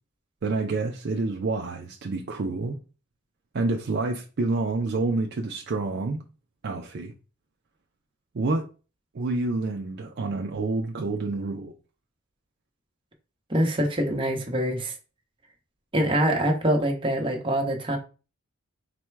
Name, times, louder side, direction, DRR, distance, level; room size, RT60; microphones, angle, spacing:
voice 1, 0.4-2.8 3.5-6.2 6.6-7.1 8.3-8.7 9.1-11.7, right 3 dB, 50° right, 0.5 m, -28 dB
voice 2, 13.5-14.9 15.9-18.0, right 1 dB, 25° right, 0.8 m, -24 dB
4.2 x 2.2 x 4.5 m
head